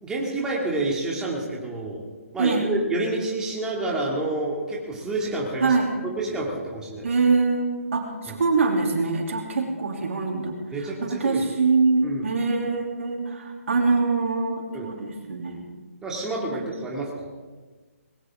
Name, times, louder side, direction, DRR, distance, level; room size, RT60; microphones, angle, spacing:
voice 1, 0.0-2.0 2.3-5.7 6.2-7.1 8.3-8.4 10.7-11.4 12.0-12.3 14.7-14.9 16.0-17.3, right 2 dB, 10° right, -3 dB, 2.7 m, -28 dB
voice 2, 2.4-2.7 5.6-5.9 7.0-15.6 16.5-16.6, right 4 dB, 60° right, 1 dB, 3.2 m, -24 dB
20.0 x 17.5 x 3.8 m, 1.3 s
figure-of-eight pair, 140°, 8 cm